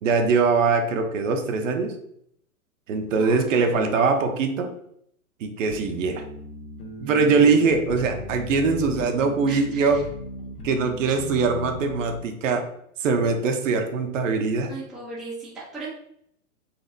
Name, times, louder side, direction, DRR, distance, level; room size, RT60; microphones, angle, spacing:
voice 1, 0.0-1.9 2.9-4.7 5.4-6.2 7.0-10.0 10.6-12.6 13.0-14.7, right 4 dB, 60° right, 4 dB, 0.8 m, -22 dB
voice 2, 3.2-3.9 9.5-10.0 11.0-11.2 14.7-15.9, right 2 dB, ahead, -8 dB, 0.6 m, -37 dB
sound 1, 5.6-12.2, left 2 dB, 90° left, 1.3 m, -38 dB
4.1 x 2.7 x 2.7 m, 0.68 s
hypercardioid pair, 135°, 44 cm